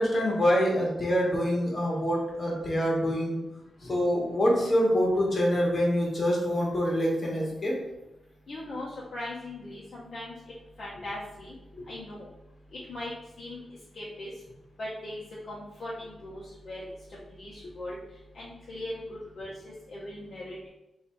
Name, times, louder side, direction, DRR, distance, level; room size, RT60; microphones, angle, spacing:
voice 1, 0.0-3.4 3.8-7.7 17.6-17.7, equal, 35° left, -3 dB, 1.2 m, -25 dB
voice 2, 8.5-10.3 10.8-11.5 11.9-12.3 12.7-13.1 13.4-13.6 14.0-14.3 14.8-16.9 17.4-18.0 18.3-20.7, left 1 dB, 50° left, -6 dB, 0.8 m, -39 dB
3.2 x 2.7 x 4.5 m, 0.91 s
wide cardioid pair, 120°, 0 cm